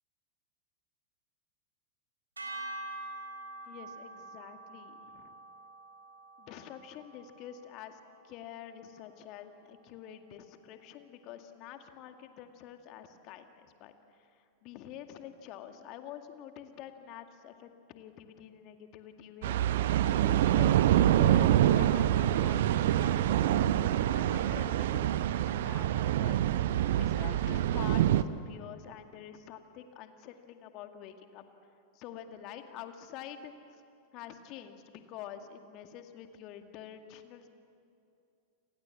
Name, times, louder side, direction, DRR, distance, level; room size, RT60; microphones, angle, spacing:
sound 1, 2.4-8.7, right 2 dB, 80° right, 4.6 m, -46 dB
voice 1, 3.7-5.4 6.4-31.4 31.9-33.8 34.1-37.5, left 10 dB, 40° left, 7 dB, 2.0 m, -47 dB
sound 2, 19.4-28.2, right 12 dB, 55° right, 0.8 m, -26 dB
30.0 x 26.0 x 7.4 m, 2.6 s
figure-of-eight pair, 90°, 0 cm